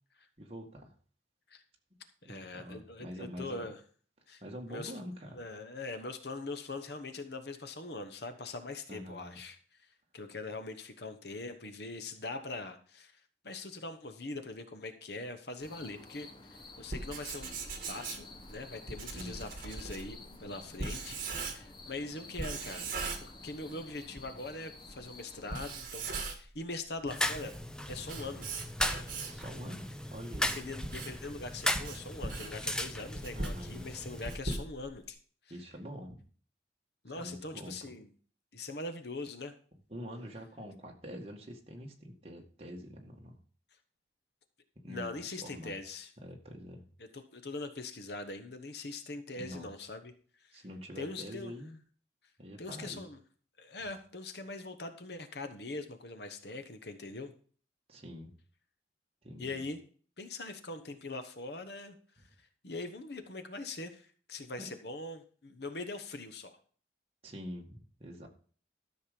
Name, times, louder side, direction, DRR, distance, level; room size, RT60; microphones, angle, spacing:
voice 1, 0.4-0.9 2.2-3.7 4.4-5.4 8.9-9.4 19.1-19.4 29.3-30.6 33.4-33.9 35.5-36.2 37.2-37.8 39.9-43.4 44.8-45.1 45.4-45.9 46.2-46.8 49.3-49.7 50.5-51.8 52.4-53.0 57.9-58.3 59.2-59.6 67.2-68.3, equal, 30° right, 1.9 m, -45 dB
voice 2, 2.2-3.8 4.3-4.4 4.7-9.6 10.1-13.1 13.4-22.9 23.2-27.5 27.9-28.5 30.5-35.2 37.0-38.1 38.5-39.5 44.9-46.1 47.1-50.1 50.5-50.6 51.0-51.5 52.6-53.2 53.6-57.3 59.4-59.8 60.2-62.0 62.6-66.6, left 2 dB, 65° left, 1.1 m, -42 dB
sound 1, 15.6-25.8, left 2 dB, 25° left, 1.2 m, -52 dB
Writing, 16.8-21.9 22.4-23.8 24.2-24.3 24.9-25.0 25.4-26.6 27.0-29.5 30.0-35.1, right 3 dB, 50° right, 2.1 m, -39 dB
sound 2, 27.1-34.4, left 1 dB, 5° left, 0.5 m, -37 dB
13.0 x 6.5 x 5.2 m
head